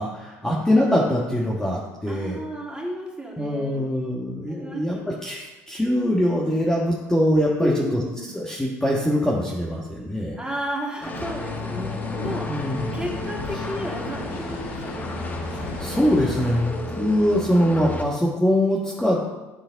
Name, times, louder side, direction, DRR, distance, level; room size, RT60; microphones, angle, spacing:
voice 1, 0.0-2.4 3.4-8.0 8.3-10.4 12.5-13.0 15.5-19.2, equal, 5° left, -4 dB, 1.4 m, -23 dB
voice 2, 2.1-4.1 4.6-5.2 7.6-8.4 10.3-15.2, equal, 10° right, -3 dB, 2.4 m, -33 dB
sound 1, 11.0-18.0, left 2 dB, 25° left, 1.1 m, -33 dB
sound 2, 11.1-16.6, left 2 dB, 75° left, 0.9 m, -34 dB
9.5 x 3.9 x 3.9 m, 1.1 s
hypercardioid pair, 60°, 8 cm